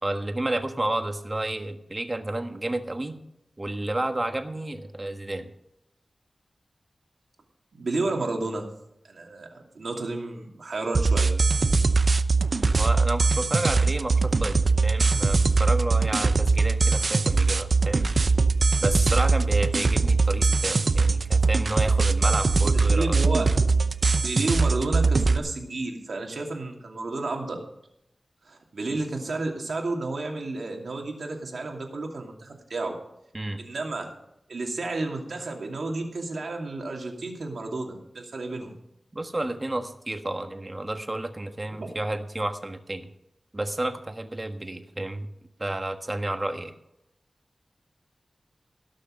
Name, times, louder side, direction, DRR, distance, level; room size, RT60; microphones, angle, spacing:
voice 1, 0.0-3.2 3.6-5.5 12.7-18.1 18.8-23.2 33.3-33.6 39.1-43.1 43.5-45.3 45.6-46.7, right 1 dB, 30° right, 6 dB, 1.4 m, -31 dB
voice 2, 7.7-8.7 9.0-9.5 9.7-11.3 22.6-23.5 23.7-23.9 24.2-27.6 28.4-32.9 33.6-34.1 34.5-38.7 41.7-41.9, right 2 dB, 80° right, 1 dB, 2.6 m, -31 dB
sound 1, 10.9-25.4, right 4 dB, 60° right, 0.7 m, -22 dB
17.5 x 6.6 x 6.4 m, 0.81 s
wide cardioid pair, 75°, 0 cm